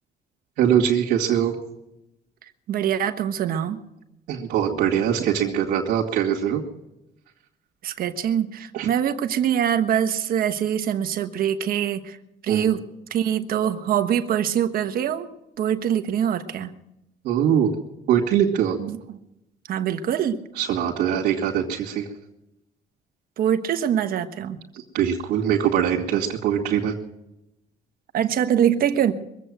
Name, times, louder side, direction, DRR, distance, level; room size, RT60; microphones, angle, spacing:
voice 1, 0.6-1.5 4.3-6.6 8.7-8.9 12.5-12.7 17.2-17.7 18.1-18.8 20.6-22.1 24.7-27.0, right 9 dB, 85° right, -5 dB, 2.3 m, -22 dB
voice 2, 2.7-3.8 7.8-12.2 12.4-12.8 13.1-15.3 15.6-16.7 18.8-19.2 19.7-20.4 23.4-24.6 28.1-29.1, right 9 dB, 60° right, 9 dB, 1.3 m, -23 dB
23.0 x 8.2 x 7.7 m, 0.87 s
cardioid pair, 110°, 17 cm